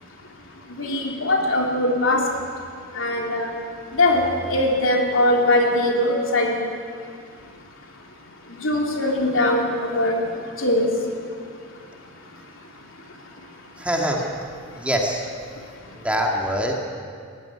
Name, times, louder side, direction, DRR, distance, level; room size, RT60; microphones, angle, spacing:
voice 1, 0.8-2.2 3.0-3.5 3.9-6.5 8.5-10.2 10.6-10.9, left 1 dB, 65° left, 0 dB, 3.5 m, -21 dB
voice 2, 13.8-14.2 14.8-15.2 16.0-16.7, equal, 5° right, 0 dB, 2.0 m, -24 dB
17.5 x 15.5 x 9.9 m, 2.2 s
head